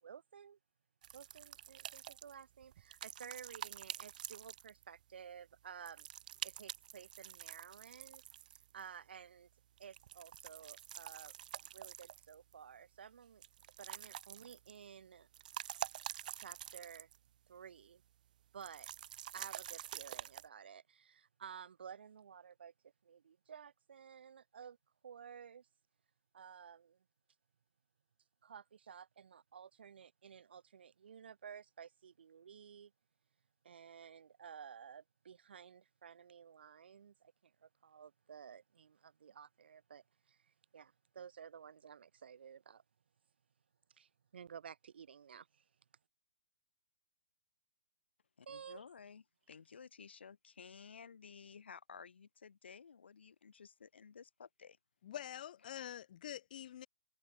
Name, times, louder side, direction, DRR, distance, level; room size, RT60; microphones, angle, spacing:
voice 1, 0.0-0.6 1.1-6.1 6.4-8.2 8.7-9.5 9.8-11.3 11.7-13.4 13.8-15.3 16.3-17.1 17.5-18.0 18.5-18.9 19.3-22.7 23.0-24.8 25.0-25.7 26.3-27.0 28.4-32.9 33.6-42.8 43.9-45.6 48.5-48.8, right 7 dB, 70° right, 4.2 m, -54 dB
sound 1, 1.0-5.0 5.9-8.9 9.8-12.5 13.4-14.8 15.2-17.3 17.5-17.6 18.6-20.5, right 12 dB, 50° right, 3.8 m, -48 dB
voice 2, 48.4-54.8, left 6 dB, 85° left, 4.6 m, -55 dB
voice 3, 55.0-56.9, left 11 dB, 50° left, 0.8 m, -46 dB
hypercardioid pair, 155°, 6 cm